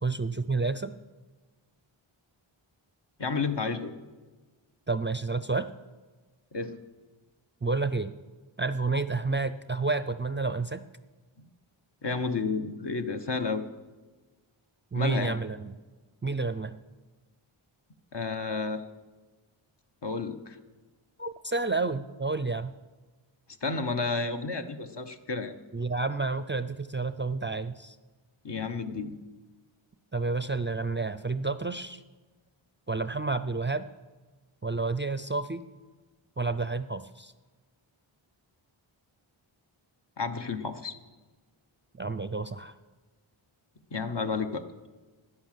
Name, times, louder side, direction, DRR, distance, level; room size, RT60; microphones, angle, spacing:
voice 1, 0.0-0.9 4.9-5.7 7.6-8.1 8.6-10.8 14.9-15.7 16.2-16.7 21.2-22.7 25.7-28.0 30.1-32.0 32.9-33.9 34.6-35.6 36.4-37.3 41.9-42.7, right 3 dB, 25° right, 12 dB, 0.4 m, -30 dB
voice 2, 3.2-4.0 6.5-6.8 11.4-11.5 12.0-13.6 14.9-15.4 18.1-18.8 20.0-20.6 23.6-25.6 28.4-29.1 40.2-40.9 43.9-44.6, left 4 dB, 55° left, 7 dB, 1.1 m, -31 dB
11.0 x 9.9 x 7.4 m, 1.3 s
wide cardioid pair, 45°, 50 cm